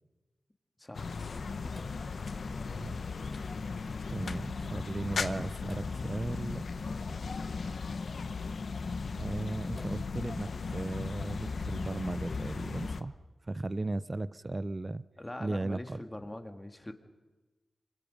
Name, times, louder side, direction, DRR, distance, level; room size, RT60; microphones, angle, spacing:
voice 1, 0.8-1.2 15.2-16.9, left 1 dB, 20° left, 6 dB, 2.2 m, -43 dB
sound 1, 0.9-13.0, left 4 dB, 75° left, 1.0 m, -37 dB
Sink (filling or washing), 1.6-11.5, left 2 dB, 40° left, 3.8 m, -57 dB
voice 2, 4.1-6.6 9.2-13.1 13.5-15.0 15.4-16.0, right 2 dB, 35° right, 17 dB, 0.7 m, -36 dB
26.0 x 24.5 x 5.4 m, 1.2 s
cardioid pair, 60°, 0 cm